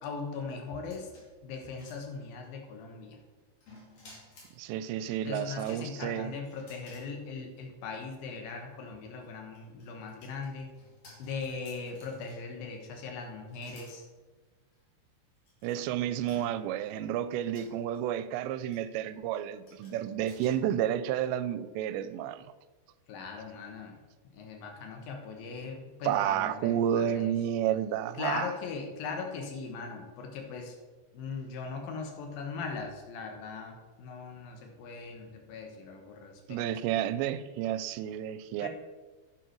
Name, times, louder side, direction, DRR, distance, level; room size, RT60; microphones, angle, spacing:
voice 1, 0.0-1.1 1.4-3.2 5.3-10.7 11.2-14.0 23.1-24.0 24.3-27.3 28.2-30.7 31.1-36.6 38.6-38.7, left 4 dB, 65° left, 3 dB, 2.7 m, -39 dB
sound 1, 0.7-2.5 3.6-4.6 5.4-7.1 7.5-7.6 9.1-12.6 13.5-14.0 14.7-14.8 15.5-15.8 16.3-16.9 17.5-18.0 18.7-19.0 19.7-20.5, left 2 dB, 40° left, 2.8 m, -55 dB
voice 2, 4.6-6.3 15.6-22.4 26.0-28.5 36.5-38.7, right 10 dB, 85° right, 14 dB, 2.7 m, -31 dB
10.5 x 8.2 x 4.6 m, 1.3 s
omnidirectional pair, 5.0 m